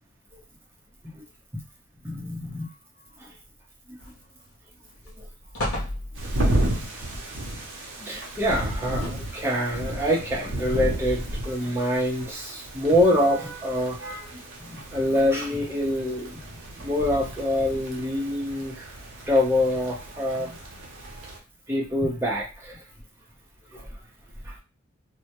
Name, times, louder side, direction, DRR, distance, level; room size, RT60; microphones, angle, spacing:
voice 1, 2.0-2.7 3.2-3.3 3.9-4.0 5.2-5.3 8.0-16.4 16.8-18.9 19.3-20.6 21.7-22.8 23.7-23.9 24.4-24.5, left 1 dB, 10° right, -4 dB, 0.6 m, -26 dB
sound 1, 4.0-4.5 4.9-5.1 5.5-6.6 8.6-9.5 10.2-10.3, left 1 dB, 80° left, 0.8 m, -33 dB
sound 2, 6.1-21.4, right 1 dB, 55° right, 0.6 m, -33 dB
2.1 x 2.1 x 2.8 m, 0.31 s
head